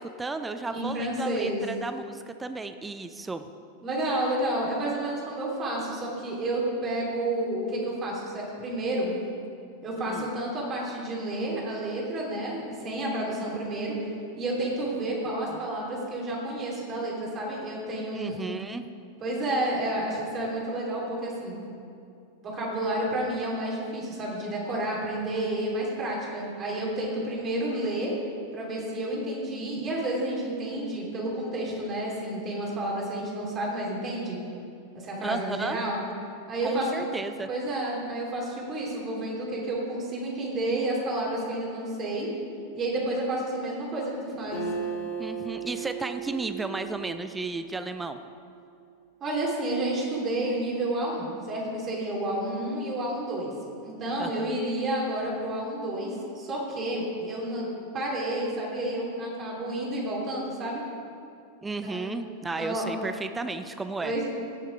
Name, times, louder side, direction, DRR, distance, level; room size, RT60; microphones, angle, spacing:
voice 1, 0.0-3.4 10.1-10.3 18.1-18.8 35.2-35.8 36.6-37.5 45.2-48.2 54.2-54.5 61.6-64.1, right 3 dB, 10° right, 9 dB, 0.5 m, -34 dB
voice 2, 0.7-1.6 3.8-9.1 9.8-13.9 14.3-18.5 19.2-21.5 22.4-28.1 28.5-34.4 34.9-36.0 36.5-37.0 37.5-42.3 42.7-44.6 49.2-53.5 53.8-57.7 57.9-60.8 61.8-62.0 62.6-62.9 64.0-64.2, right 1 dB, 25° right, -4 dB, 3.1 m, -30 dB
Acoustic guitar, 44.5-48.1, right 6 dB, 50° left, 2.6 m, -36 dB
17.0 x 6.5 x 5.0 m, 2.5 s
figure-of-eight pair, 90°, 0 cm